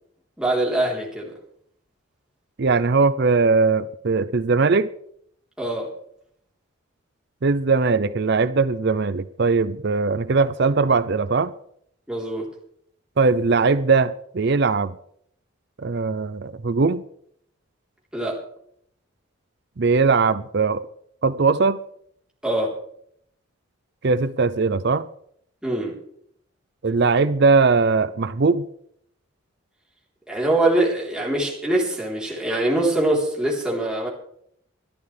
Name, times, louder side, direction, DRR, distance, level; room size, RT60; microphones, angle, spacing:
voice 1, 0.4-1.3 5.6-5.9 12.1-12.4 18.1-18.4 22.4-22.7 25.6-26.0 30.3-34.1, right 1 dB, 5° right, 3.7 m, -23 dB
voice 2, 2.6-4.9 7.4-11.5 13.2-14.9 15.8-17.0 19.8-20.8 21.2-21.8 24.0-25.1 26.8-28.7, right 4 dB, 50° right, 0.5 m, -20 dB
23.5 x 11.5 x 3.4 m
head